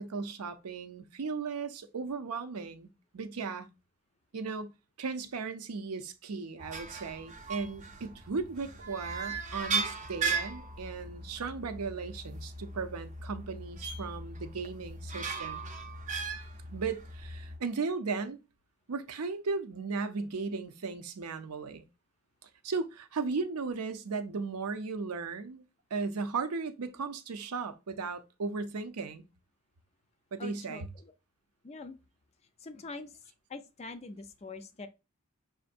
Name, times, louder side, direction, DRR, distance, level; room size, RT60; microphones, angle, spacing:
voice 1, 0.0-3.7 4.3-4.7 5.0-15.6 16.7-18.4 18.9-21.9 22.6-25.6 25.9-29.3 30.3-30.9, right 4 dB, 85° right, 0.6 m, -36 dB
sound 1, 6.6-17.6, right 4 dB, 35° right, 0.6 m, -38 dB
voice 2, 30.4-31.1 31.6-32.0 32.6-33.2 33.5-34.9, left 3 dB, 30° left, 0.4 m, -44 dB
6.1 x 2.6 x 2.5 m
head